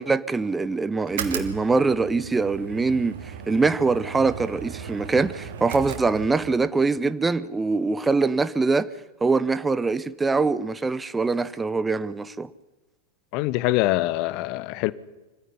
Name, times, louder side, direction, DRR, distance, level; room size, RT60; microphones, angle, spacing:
voice 1, 0.0-8.9 9.2-12.5, right 4 dB, 10° right, 0.7 m, -23 dB
sound 1, 1.0-6.7, right 8 dB, 55° right, 2.6 m, -37 dB
voice 2, 13.3-14.9, left 17 dB, 45° left, 0.9 m, -24 dB
25.0 x 15.5 x 9.9 m
figure-of-eight pair, 90°, 0 cm